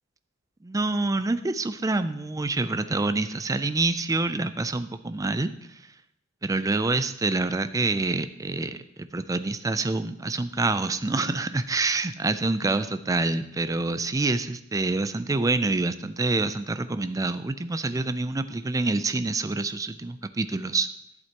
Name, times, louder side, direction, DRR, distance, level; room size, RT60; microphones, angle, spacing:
voice 1, 0.6-5.8 6.4-8.8 9.1-20.9, right 3 dB, 15° right, 11 dB, 0.4 m, -27 dB
11.5 x 7.8 x 2.9 m, 0.79 s
head